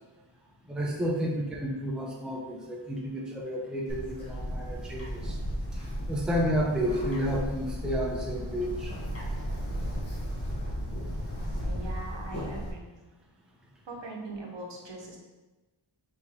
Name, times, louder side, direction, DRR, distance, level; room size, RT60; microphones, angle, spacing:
voice 1, 0.7-5.4 5.7-5.8 6.1-8.9, equal, ahead, -2 dB, 0.6 m, -31 dB
Bird, 3.9-12.7, equal, 30° left, 0.9 m, -34 dB
voice 2, 11.6-13.0 13.9-15.2, right 2 dB, 60° right, -1 dB, 0.9 m, -41 dB
3.5 x 2.8 x 4.3 m, 1.1 s
wide cardioid pair, 75°, 48 cm